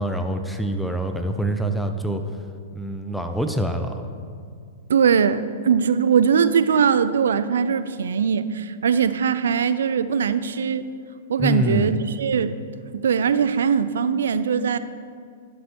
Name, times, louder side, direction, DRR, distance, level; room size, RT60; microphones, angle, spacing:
voice 1, 0.0-2.2 2.8-4.0 11.4-12.0, equal, ahead, 6 dB, 0.5 m, -25 dB
voice 2, 4.9-10.8 11.3-12.6 12.9-14.8, right 7 dB, 70° right, 13 dB, 0.3 m, -21 dB
11.5 x 6.2 x 2.9 m, 2.2 s
hypercardioid pair, 110°, 0 cm